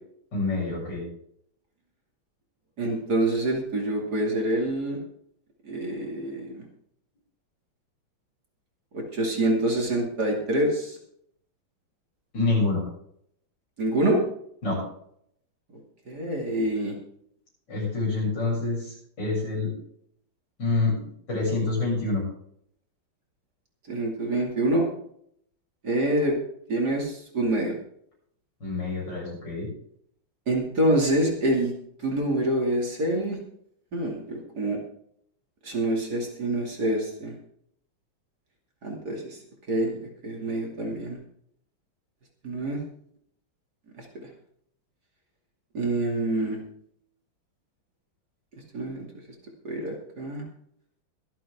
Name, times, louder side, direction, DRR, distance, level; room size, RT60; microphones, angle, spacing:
voice 1, 0.3-1.0 12.3-12.8 14.6-14.8 17.7-19.7 20.6-20.9 21.3-22.2 28.6-29.7, left 3 dB, 55° left, -4 dB, 8.3 m, -26 dB
voice 2, 2.8-5.0 5.6-6.6 8.9-11.0 13.8-14.2 16.1-17.0 23.9-24.9 25.8-26.4 26.7-27.8 30.5-31.7 32.0-33.4 33.9-34.8 35.6-37.3 38.8-39.4 39.7-41.2 42.4-42.8 44.0-44.1 45.7-46.6 48.7-49.0 49.6-50.4, right 1 dB, 50° right, -1 dB, 3.1 m, -26 dB
24.0 x 8.4 x 3.7 m, 0.69 s
omnidirectional pair, 2.3 m